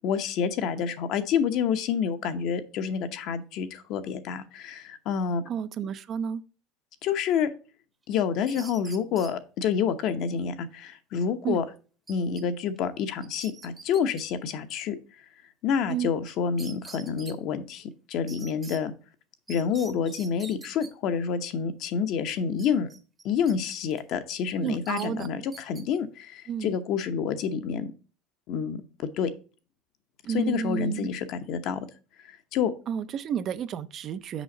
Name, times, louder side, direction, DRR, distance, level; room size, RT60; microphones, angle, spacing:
voice 1, 0.0-5.4 7.0-7.5 8.1-11.6 12.1-15.0 15.6-18.9 19.5-22.9 23.2-27.9 28.5-28.8 29.2-29.3 30.3-31.8 32.3-32.7, left 7 dB, 55° left, 0.8 m, -28 dB
voice 2, 5.5-6.4 11.4-11.6 15.9-16.1 24.6-25.3 26.5-26.8 30.2-31.1 32.9-34.4, right 8 dB, 40° right, 0.4 m, -31 dB
sound 1, 8.2-9.3 12.1-12.4 12.8-12.9 13.2-14.2 16.3-16.4 16.6-17.4 18.3-18.8 19.5-20.9 22.6-23.5 23.9-24.1 24.9-25.8, right 4 dB, 15° right, 0.8 m, -46 dB
6.2 x 5.1 x 3.9 m
supercardioid pair, 135°, 0 cm